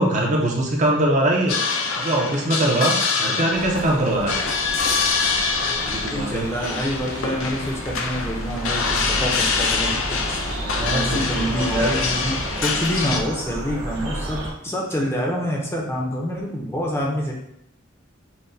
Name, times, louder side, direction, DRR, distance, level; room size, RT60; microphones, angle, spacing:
voice 1, 0.0-1.6 2.0-4.3 5.8-6.4 10.6-11.2 11.5-11.9, right 1 dB, 35° right, -1 dB, 0.5 m, -22 dB
sound 1, 1.5-13.2, left 4 dB, 75° left, 0.5 m, -25 dB
sound 2, 3.5-14.5, right 1 dB, 65° right, 0.9 m, -31 dB
voice 2, 6.1-10.4 10.9-17.3, equal, 10° left, -2 dB, 0.5 m, -27 dB
5.7 x 2.1 x 2.6 m, 0.78 s
head